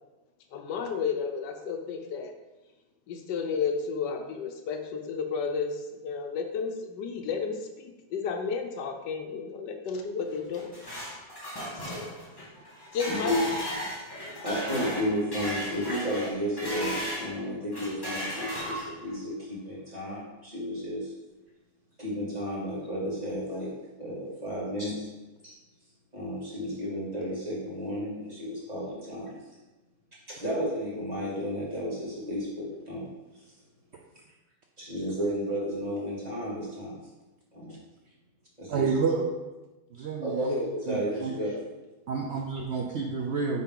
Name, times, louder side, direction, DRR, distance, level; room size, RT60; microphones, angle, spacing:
voice 1, 0.5-2.3 3.1-10.7 12.9-13.3, left 5 dB, 75° left, 5 dB, 1.3 m, -32 dB
sound 1, 10.3-17.3 17.7-19.1, equal, 15° left, 1.7 m, -35 dB
voice 2, 13.1-13.4 14.4-21.1 22.0-23.7 24.0-25.1 25.4-25.5 26.1-29.4 30.3-33.1 33.4-33.5 34.8-37.0 37.5-37.8 38.6-38.9 40.2-41.6, equal, 20° right, -7 dB, 2.4 m, -32 dB
voice 3, 38.7-39.3 39.9-40.6 40.9-41.3 42.1-43.6, right 5 dB, 75° right, 1 dB, 0.6 m, -30 dB
9.3 x 4.2 x 3.8 m, 1.1 s
omnidirectional pair, 1.9 m